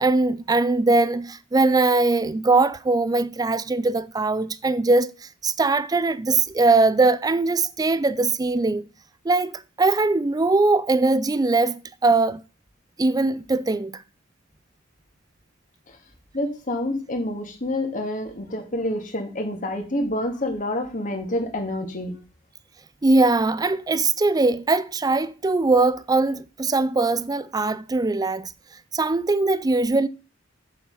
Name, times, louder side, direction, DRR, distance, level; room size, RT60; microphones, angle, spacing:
voice 1, 0.0-5.1 5.4-8.9 9.3-12.4 13.0-14.0 23.0-28.5 28.9-30.1, right 3 dB, 20° right, 0.4 m, -21 dB
voice 2, 16.3-22.1, left 1 dB, 45° left, 2.2 m, -28 dB
7.2 x 6.9 x 5.5 m
head